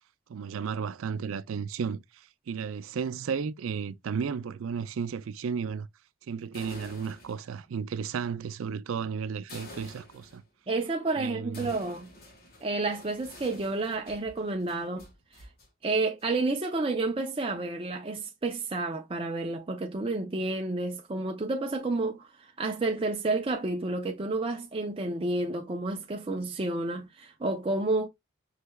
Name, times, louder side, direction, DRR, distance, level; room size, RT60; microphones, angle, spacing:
voice 1, 0.3-5.9 6.3-10.4 11.2-11.7, right 6 dB, 80° right, 0.4 m, -33 dB
sound 1, 6.4-7.7 9.5-10.4 11.5-15.7 16.0-16.5, left 1 dB, 45° left, 1.6 m, -49 dB
voice 2, 10.7-12.1 12.6-15.1 15.8-28.1, right 2 dB, 25° right, 0.5 m, -30 dB
5.5 x 3.2 x 2.2 m
head